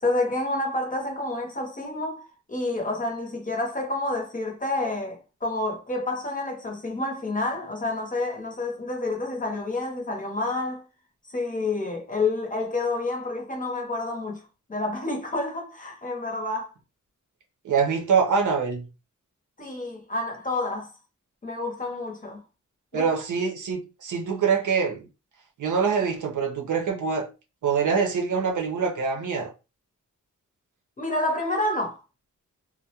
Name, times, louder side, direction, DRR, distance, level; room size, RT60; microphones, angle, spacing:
voice 1, 0.0-10.8 11.3-14.4 14.7-16.7 19.6-20.9 21.4-22.4 22.9-23.1 31.0-32.0, left 2 dB, 25° left, 0.7 m, -29 dB
voice 2, 17.6-18.9 22.9-25.0 25.6-27.3 27.6-29.5, right 6 dB, 75° right, 0.6 m, -24 dB
2.3 x 2.1 x 2.8 m
wide cardioid pair, 100°, 31 cm